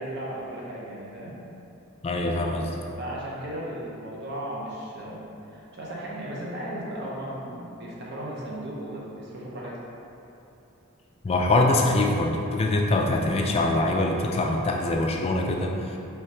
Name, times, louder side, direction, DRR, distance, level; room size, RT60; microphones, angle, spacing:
voice 1, 0.0-1.4 3.0-5.2 5.5-9.8, right 1 dB, 50° right, -5 dB, 0.6 m, -35 dB
voice 2, 2.0-2.7 11.2-16.0, left 2 dB, 30° left, 1 dB, 0.3 m, -23 dB
4.8 x 3.1 x 2.8 m, 2.8 s
head